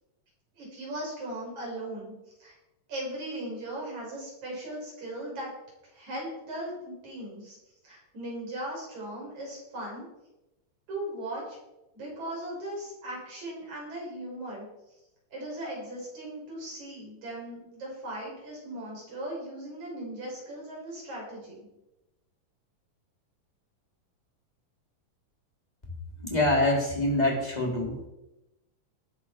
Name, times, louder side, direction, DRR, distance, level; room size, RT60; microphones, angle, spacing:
voice 1, 0.5-2.1 2.4-2.6 2.9-5.5 5.9-7.6 7.8-10.1 10.9-11.6 11.9-14.7 15.3-21.7, right 1 dB, 60° right, -3 dB, 7.6 m, -38 dB
voice 2, 26.2-28.0, left 1 dB, 10° left, -1 dB, 3.2 m, -25 dB
19.5 x 10.5 x 4.5 m, 0.93 s
omnidirectional pair, 3.8 m